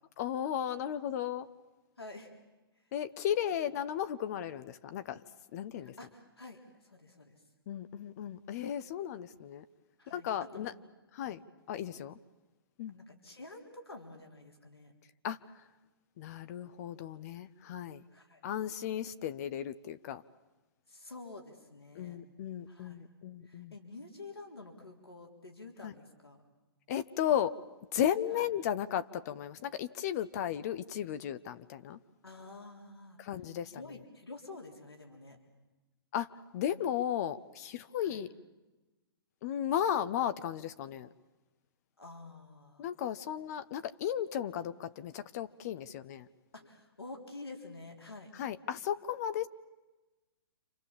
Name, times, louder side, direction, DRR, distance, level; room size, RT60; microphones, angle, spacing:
voice 1, 0.2-1.5 2.9-5.2 5.5-5.9 7.7-9.6 10.1-10.7 11.2-11.4 11.7-12.2 12.8-12.9 15.2-15.4 16.2-18.0 18.4-20.2 21.9-23.7 25.8-25.9 26.9-27.5 27.9-32.0 33.2-33.7 36.1-38.3 39.4-41.1 42.8-46.3 48.4-49.5, left 10 dB, 40° left, 12 dB, 0.9 m, -35 dB
voice 2, 2.0-2.3 5.8-7.4 10.0-10.7 11.2-11.4 12.9-14.9 18.1-18.5 20.9-22.2 22.7-23.1 23.4-26.4 28.3-28.5 32.2-33.2 33.6-35.4 38.0-38.2 42.0-42.9 46.5-48.3, left 2 dB, 90° left, 2 dB, 3.9 m, -49 dB
29.0 x 26.0 x 7.3 m, 1.1 s
figure-of-eight pair, 120°, 13 cm